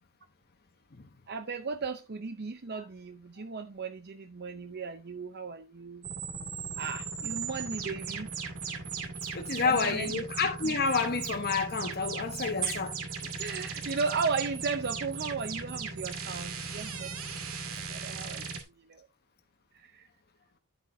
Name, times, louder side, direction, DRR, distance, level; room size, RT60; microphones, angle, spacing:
voice 1, 1.3-6.1 6.7-8.3 9.6-10.2 12.6-12.7 13.4-17.4 17.9-18.6 18.8-19.1 19.7-20.1, right 4 dB, 50° right, 0.7 m, -36 dB
sound 1, 6.0-18.6, right 5 dB, 65° right, 2.4 m, -37 dB
voice 2, 9.3-13.0, left 5 dB, 45° left, 1.1 m, -29 dB
11.0 x 7.9 x 2.7 m
head